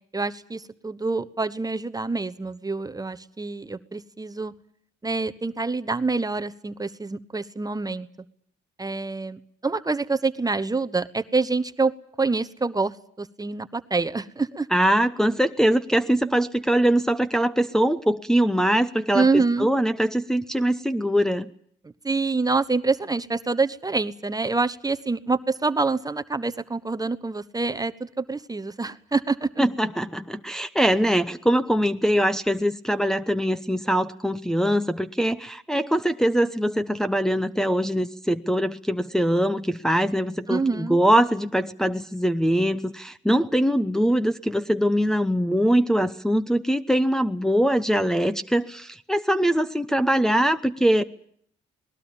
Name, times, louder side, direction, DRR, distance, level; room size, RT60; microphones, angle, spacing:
voice 1, 0.1-4.5 5.0-8.1 8.8-11.9 12.2-14.7 19.1-19.7 22.0-29.5 40.5-41.0, right 3 dB, 20° right, 11 dB, 1.1 m, -26 dB
voice 2, 14.7-21.5 29.6-51.0, equal, 5° left, 7 dB, 1.0 m, -22 dB
27.0 x 20.0 x 7.2 m, 0.63 s
cardioid pair, 90°, 20 cm